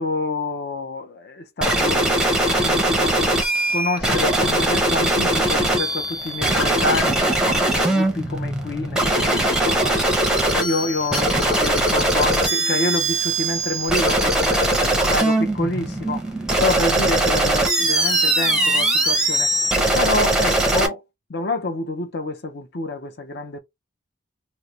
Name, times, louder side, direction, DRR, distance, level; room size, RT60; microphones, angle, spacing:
voice 1, 0.0-3.4 3.7-10.2 10.5-16.2 16.6-19.5 19.9-21.0 21.3-23.6, left 2 dB, 50° left, 0.5 m, -28 dB
sound 1, 1.6-20.9, right 1 dB, 5° right, 0.6 m, -20 dB
3.1 x 2.0 x 3.8 m
head